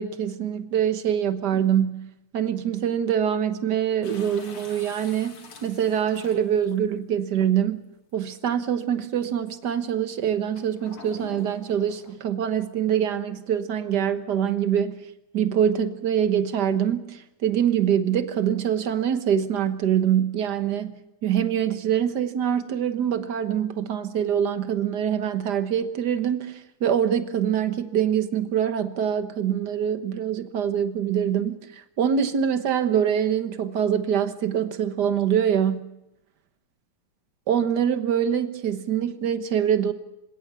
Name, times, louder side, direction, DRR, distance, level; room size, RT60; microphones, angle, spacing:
voice 1, 0.0-2.1 2.3-5.4 5.6-7.8 8.1-15.0 15.3-21.0 21.2-31.6 32.0-35.9 37.5-39.9, right 9 dB, 55° right, 1.1 m, -24 dB
sound 1, 4.0-6.8 7.6-7.7 10.6-12.1, left 4 dB, 65° left, 4.0 m, -46 dB
27.5 x 17.5 x 6.9 m
omnidirectional pair, 3.4 m